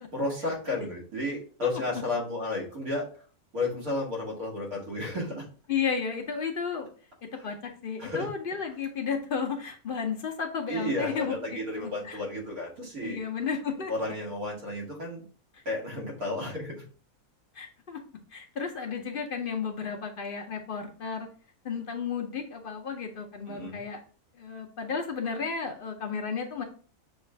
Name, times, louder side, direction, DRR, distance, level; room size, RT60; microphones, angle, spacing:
voice 1, 0.1-3.1 3.5-5.5 7.3-7.5 8.0-8.3 10.7-13.2 13.9-15.2 15.7-16.8 23.5-23.8, left 2 dB, 90° right, -4 dB, 2.3 m, -32 dB
voice 2, 5.7-6.9 7.4-12.2 13.0-13.9 17.5-18.0 18.3-21.3 21.6-24.0 24.3-26.6, left 6 dB, 55° left, 4 dB, 0.6 m, -33 dB
6.6 x 2.4 x 3.2 m, 0.42 s
omnidirectional pair, 1.5 m